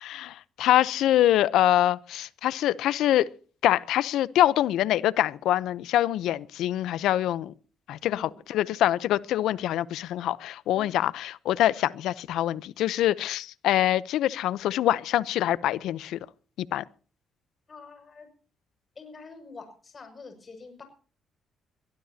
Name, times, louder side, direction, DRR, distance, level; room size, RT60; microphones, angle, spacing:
voice 1, 0.0-3.3 3.6-7.5 7.9-16.2 16.6-16.8, left 13 dB, 85° left, 0.7 m, -25 dB
voice 2, 8.0-8.4 10.7-10.9 17.7-18.3 18.9-20.8, left 4 dB, 35° left, 6.4 m, -46 dB
23.0 x 17.5 x 2.9 m
cardioid pair, 90°, 0 cm